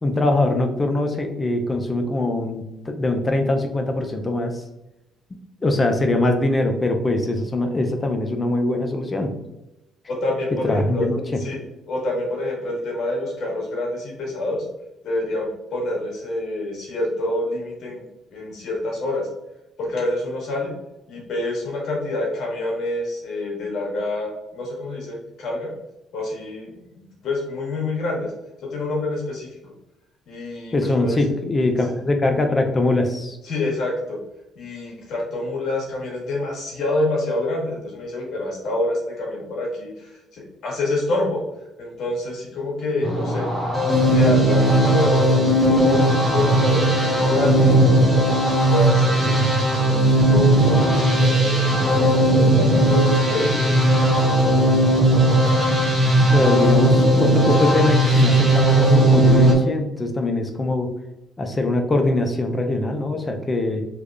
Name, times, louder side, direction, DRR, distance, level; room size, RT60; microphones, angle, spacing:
voice 1, 0.0-4.6 5.6-9.3 10.5-11.4 30.7-33.4 56.3-60.9 61.4-63.8, left 2 dB, 25° left, 5 dB, 0.5 m, -22 dB
voice 2, 10.1-11.1 11.4-11.6 11.9-14.6 15.0-18.0 18.3-19.3 19.8-20.7 21.1-25.7 26.1-28.3 28.7-29.5 30.3-31.2 33.4-34.2 34.5-41.4 41.8-43.5 44.0-45.4 45.7-49.3 49.8-53.7, left 2 dB, 60° left, -3 dB, 1.5 m, -27 dB
sound 1, 43.0-59.5, right 1 dB, 10° right, 1.1 m, -17 dB
3.4 x 3.1 x 2.5 m, 0.92 s
cardioid pair, 100°, 0 cm